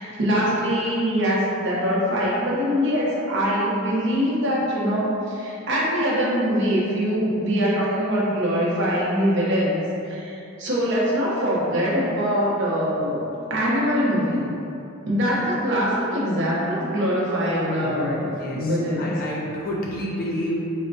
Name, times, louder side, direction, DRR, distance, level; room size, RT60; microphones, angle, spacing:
voice 1, 0.0-13.2 13.5-14.5 15.1-18.3 18.5-19.1, equal, 60° right, -6 dB, 0.7 m, -23 dB
voice 2, 17.4-20.6, equal, 45° left, -4 dB, 0.5 m, -30 dB
4.2 x 2.1 x 2.6 m, 2.7 s
head